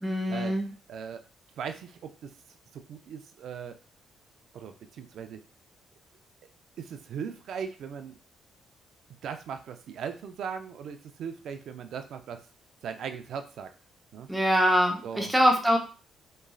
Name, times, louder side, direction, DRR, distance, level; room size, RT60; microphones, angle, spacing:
voice 1, 0.0-0.7 14.3-15.8, equal, 5° right, 3 dB, 0.7 m, -23 dB
voice 2, 0.9-1.2 1.6-2.3 2.7-3.8 4.5-5.4 6.8-8.2 9.2-12.5 12.8-13.7 14.1-14.3 15.0-15.3, right 7 dB, 70° right, 8 dB, 0.4 m, -38 dB
3.0 x 2.4 x 2.3 m, 0.35 s
cardioid pair, 90°, 0 cm